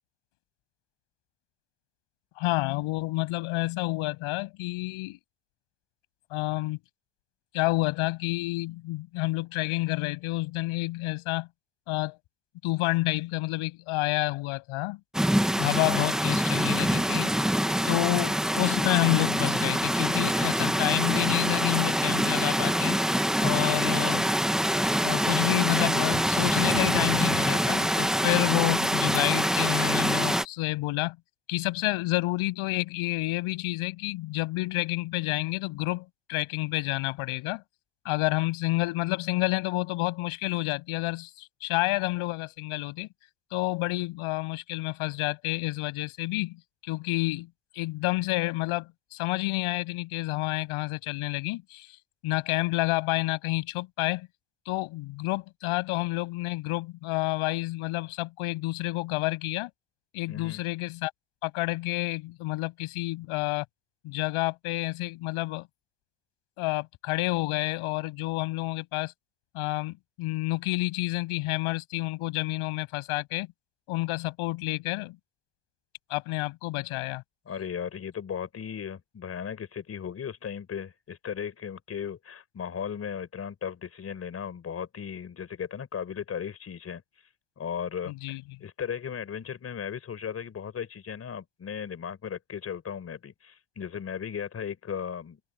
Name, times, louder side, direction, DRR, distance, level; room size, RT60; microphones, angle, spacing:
voice 1, 2.4-5.2 6.3-6.8 7.5-11.5 11.9-12.2 12.6-15.0 15.6-17.3 17.8-23.0 23.4-24.3 25.0-31.2 31.5-37.6 38.0-43.1 43.5-46.6 46.8-51.9 52.2-54.3 54.7-59.7 60.1-61.1 61.4-63.7 64.0-65.7 66.6-69.1 69.5-73.5 73.9-75.2 76.1-77.2 88.1-88.4, left 20 dB, 80° left, 7.5 m, -29 dB
sound 1, 15.1-30.5, equal, ahead, 0.9 m, -25 dB
voice 2, 60.3-60.6 77.5-87.0 87.6-95.4, left 7 dB, 30° left, 4.6 m, -36 dB
cardioid pair, 160°, 49 cm